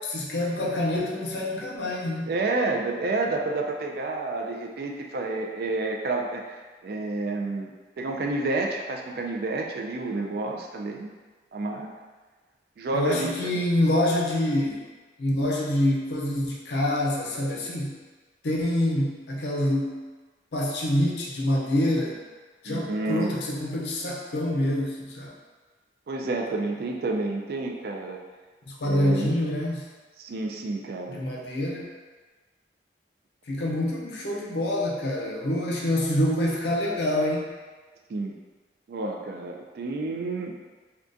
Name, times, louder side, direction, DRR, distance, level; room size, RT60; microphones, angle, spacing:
voice 1, 0.0-2.3 12.9-14.8 15.2-18.0 18.4-20.0 20.5-22.2 22.6-25.3 28.7-29.8 31.1-31.9 33.5-37.5, left 1 dB, 70° left, -2 dB, 0.5 m, -26 dB
voice 2, 2.3-7.7 8.0-11.1 11.5-11.9 12.8-13.6 22.6-23.3 26.1-28.2 28.8-29.3 30.2-31.2 38.1-38.4 38.9-40.6, right 2 dB, 55° right, 1 dB, 0.3 m, -30 dB
3.7 x 2.3 x 2.5 m, 1.3 s
head